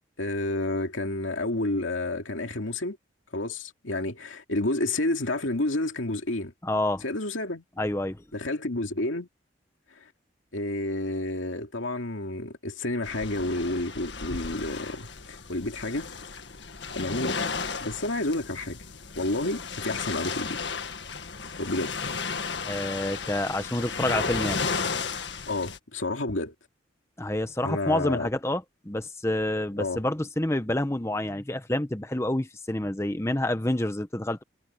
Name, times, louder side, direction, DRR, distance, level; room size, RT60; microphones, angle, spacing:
voice 1, 0.2-3.0 3.3-6.5 7.0-7.6 8.3-9.3 10.0-10.1 10.5-16.1 16.9-17.4 17.8-18.8 19.2-20.6 21.6-21.9 25.5-26.5 27.6-28.3 29.8-30.0, left 2 dB, 85° left, 2.5 m, -30 dB
voice 2, 6.6-7.0 7.8-8.2 22.6-24.6 27.2-34.4, left 1 dB, 15° left, 0.8 m, -28 dB
sound 1, 13.0-25.8, left 5 dB, 65° left, 1.8 m, -34 dB
head